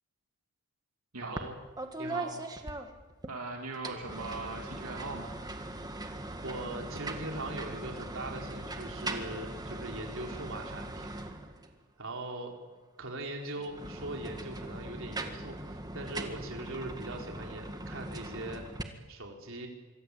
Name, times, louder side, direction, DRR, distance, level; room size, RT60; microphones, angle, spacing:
voice 1, 1.2-1.6 2.0-2.4 6.4-11.1 12.0-12.5 13.0-18.6 19.1-19.7, right 2 dB, 60° right, 1 dB, 4.5 m, -40 dB
sound 1, 1.4-1.5 1.8-3.3 3.7-11.8 13.5-18.8, right 2 dB, 15° right, 1.8 m, -40 dB
voice 2, 3.3-5.3, right 3 dB, 85° right, 1 dB, 2.8 m, -39 dB
25.5 x 23.5 x 8.5 m, 1.3 s
head